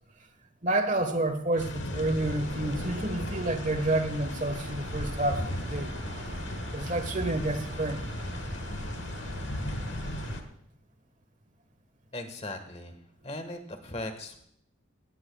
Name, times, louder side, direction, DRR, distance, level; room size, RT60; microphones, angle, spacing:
voice 1, 0.6-6.0 6.7-8.0, right 2 dB, 40° right, 9 dB, 1.3 m, -29 dB
sound 1, 1.6-10.4, left 1 dB, 65° left, 1.3 m, -37 dB
sound 2, 2.2-10.4, right 1 dB, 65° right, 3.3 m, -41 dB
voice 2, 12.1-13.0 13.2-14.4, left 1 dB, 30° left, 8 dB, 1.4 m, -38 dB
17.5 x 16.5 x 2.3 m, 0.70 s
head